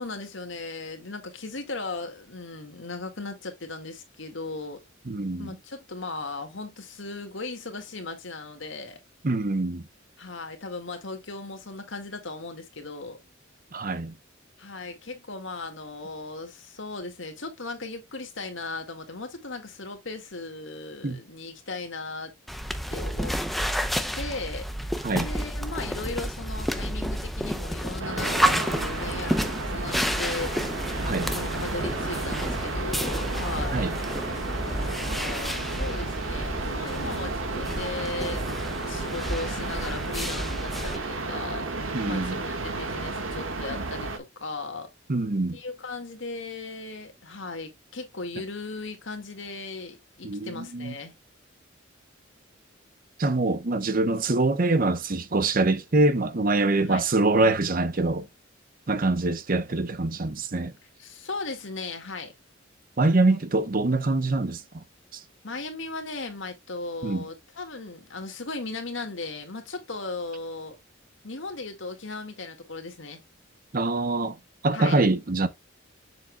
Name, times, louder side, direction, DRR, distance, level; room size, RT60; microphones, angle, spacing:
voice 1, 0.0-4.8 5.4-9.0 10.2-13.2 14.6-22.3 22.9-23.4 24.1-33.9 34.8-38.4 38.8-41.7 42.1-44.9 45.5-51.1 56.8-57.0 61.0-62.3 63.3-63.4 65.4-70.8 71.2-73.2 74.7-75.0, left 3 dB, 65° left, 2.0 m, -37 dB
voice 2, 5.1-5.5 9.2-9.8 13.7-14.1 21.0-21.2 25.0-25.3 31.0-31.3 33.7-33.9 41.9-42.4 45.1-45.6 50.2-50.9 53.2-58.3 58.9-60.7 63.0-64.8 67.0-67.2 73.7-74.4 74.6-75.5, right 2 dB, 45° right, 0.8 m, -24 dB
sound 1, 22.5-41.0, equal, ahead, 0.6 m, -30 dB
sound 2, 28.0-44.2, right 3 dB, 80° right, 1.6 m, -33 dB
7.3 x 6.8 x 2.3 m
head